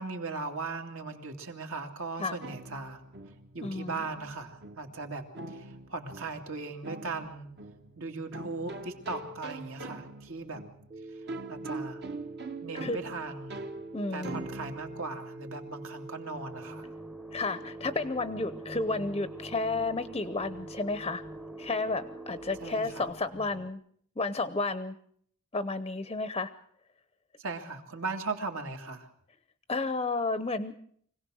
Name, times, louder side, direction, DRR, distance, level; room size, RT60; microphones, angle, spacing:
voice 1, 0.0-3.0 3.5-7.5 8.0-10.6 11.5-12.0 12.6-13.6 14.1-16.9 22.6-23.0 27.4-29.1, right 3 dB, 65° right, 3 dB, 2.6 m, -38 dB
sound 1, 2.4-16.0, right 2 dB, 50° right, 1.4 m, -43 dB
voice 2, 3.6-4.0 12.7-13.0 13.9-14.5 17.3-21.2 21.6-23.8 24.2-25.0 25.5-26.5 29.7-30.7, left 3 dB, 25° left, 12 dB, 0.8 m, -32 dB
Telephone, 10.9-23.1, right 2 dB, 20° right, 1.3 m, -45 dB
sound 2, 16.3-23.7, equal, 5° right, 0.9 m, -49 dB
25.0 x 17.5 x 6.4 m, 0.63 s
head